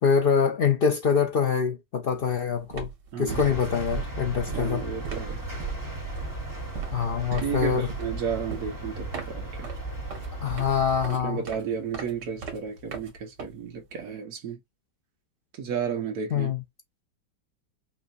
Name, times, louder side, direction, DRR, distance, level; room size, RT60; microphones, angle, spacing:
voice 1, 0.0-2.9 3.2-4.8 6.9-7.9 10.4-11.4 16.3-16.6, left 6 dB, 85° left, 0.5 m, -24 dB
sound 1, 2.1-2.3 2.6-14.0, right 5 dB, 85° right, 2.0 m, -40 dB
voice 2, 3.1-3.5 4.5-5.5 7.3-9.7 11.1-14.6 15.5-16.5, right 6 dB, 65° right, 1.7 m, -33 dB
sound 2, 3.3-11.1, right 2 dB, 10° right, 1.4 m, -36 dB
5.9 x 2.6 x 2.6 m
omnidirectional pair, 1.8 m